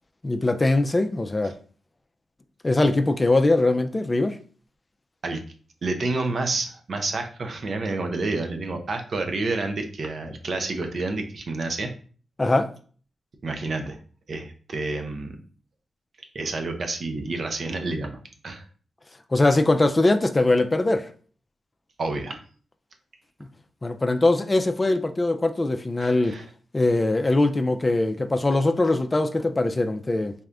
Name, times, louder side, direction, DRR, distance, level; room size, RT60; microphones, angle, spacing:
voice 1, 0.2-1.5 2.6-4.4 12.4-12.7 19.3-21.1 23.8-26.4 26.7-30.3, left 2 dB, 30° left, 0.4 m, -21 dB
voice 2, 5.8-11.9 13.4-14.0 14.3-15.3 16.3-18.7 22.0-22.4 26.0-26.4, right 3 dB, 60° right, 0.7 m, -29 dB
4.2 x 2.5 x 3.4 m
cardioid pair, 60°, 0 cm